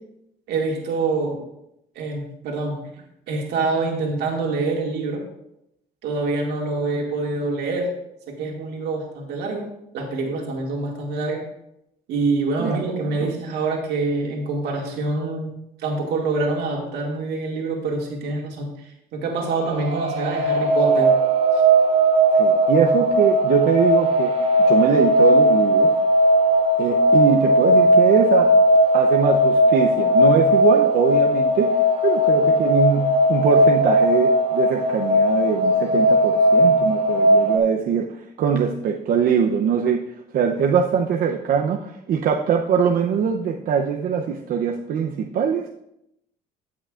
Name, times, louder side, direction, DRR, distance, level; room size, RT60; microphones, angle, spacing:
voice 1, 0.5-1.4 2.0-2.8 3.3-5.2 6.0-7.9 8.4-9.7 9.9-11.4 12.1-15.5 15.8-21.1, right 3 dB, 80° right, 0 dB, 2.1 m, -25 dB
voice 2, 12.6-13.3 22.3-25.9 26.8-28.5 28.9-40.0 40.3-45.7, right 7 dB, 60° right, 2 dB, 0.7 m, -22 dB
sound 1, 19.4-37.6, equal, 35° right, 1.6 m, -17 dB
16.0 x 6.0 x 2.5 m, 0.82 s
cardioid pair, 110°, 17 cm